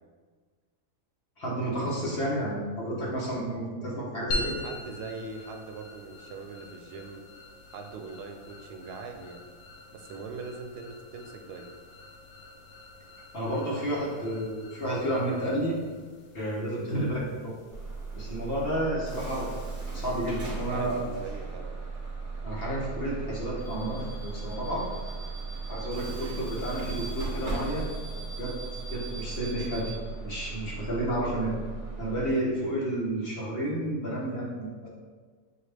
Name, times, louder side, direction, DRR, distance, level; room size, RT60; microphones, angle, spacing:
voice 1, 1.4-4.6 13.3-15.8 16.3-17.6 18.1-19.5 19.9-20.9 22.4-24.8 25.7-28.6 28.9-29.9 30.2-31.5 32.0-34.9, right 1 dB, 45° left, -5 dB, 1.0 m, -31 dB
sound 1, 4.3-19.0, left 1 dB, 70° left, 1.1 m, -43 dB
voice 2, 4.6-7.2 7.7-9.4 9.9-11.7 20.7-21.8, right 4 dB, 90° right, 5 dB, 1.1 m, -41 dB
Bus / Alarm, 17.7-32.3, right 4 dB, 35° right, 1.1 m, -37 dB
6.4 x 2.4 x 3.2 m, 1.5 s
omnidirectional pair, 1.7 m